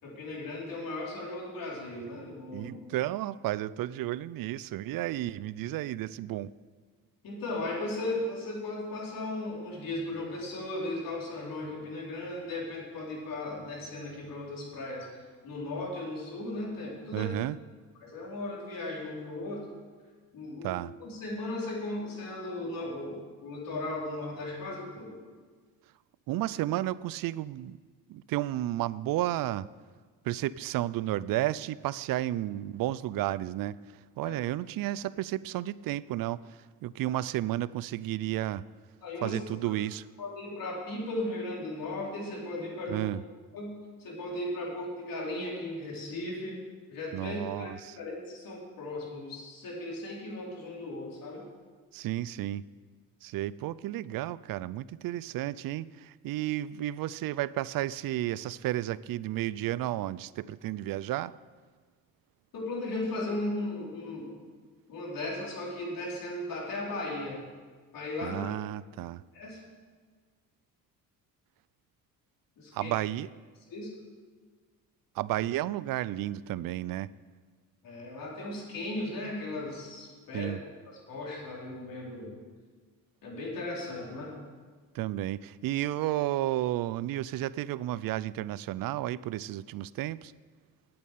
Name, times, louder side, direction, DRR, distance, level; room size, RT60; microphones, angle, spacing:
voice 1, 0.0-2.8 7.2-17.3 18.0-19.7 20.3-25.2 34.2-34.4 39.0-39.7 40.2-43.1 43.5-46.6 46.9-51.4 62.5-64.3 64.9-67.4 67.9-68.4 69.3-69.6 72.6-72.9 73.7-73.9 77.8-80.5 80.9-82.3 83.2-84.3, left 2 dB, 70° left, -3 dB, 4.5 m, -36 dB
voice 2, 2.5-6.5 17.1-17.6 20.6-20.9 26.3-27.8 28.1-29.7 30.2-38.6 39.2-40.0 42.9-43.2 47.1-48.0 51.9-52.6 53.2-61.3 68.2-69.2 72.7-73.3 75.2-77.1 80.3-80.6 84.9-90.3, right 14 dB, 70° right, 19 dB, 0.5 m, -32 dB
8.7 x 8.6 x 9.2 m, 1.5 s
cardioid pair, 105°, 35 cm